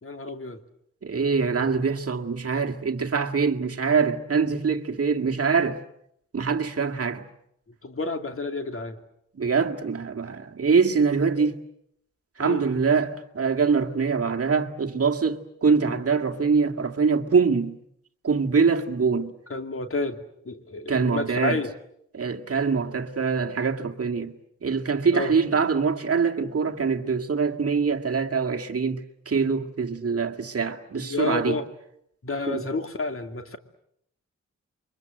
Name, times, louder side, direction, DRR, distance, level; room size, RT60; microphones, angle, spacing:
voice 1, 0.0-0.6 7.8-9.0 12.4-12.6 19.5-21.7 25.1-25.4 31.0-31.7 32.2-33.6, left 3 dB, 45° left, 2.7 m, -30 dB
voice 2, 1.0-5.8 6.3-7.2 9.4-11.6 12.4-17.8 18.2-19.3 20.9-21.6 22.1-24.3 24.6-31.6 32.5-32.7, right 5 dB, 50° right, 1.9 m, -24 dB
28.5 x 24.0 x 7.9 m
cardioid pair, 80°, 30 cm